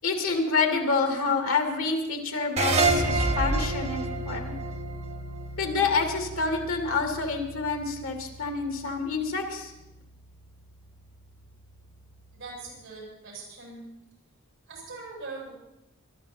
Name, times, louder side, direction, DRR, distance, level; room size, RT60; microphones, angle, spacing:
voice 1, 0.0-4.6 5.6-9.7, left 4 dB, 75° left, 4 dB, 2.2 m, -27 dB
sound 1, 2.6-5.9, right 3 dB, 30° right, 1.1 m, -27 dB
Bass guitar, 2.8-12.6, equal, 50° left, 1.4 m, -40 dB
voice 2, 12.3-13.9 14.7-15.5, right 3 dB, 65° right, -3 dB, 7.4 m, -41 dB
20.5 x 12.0 x 4.3 m, 0.91 s
head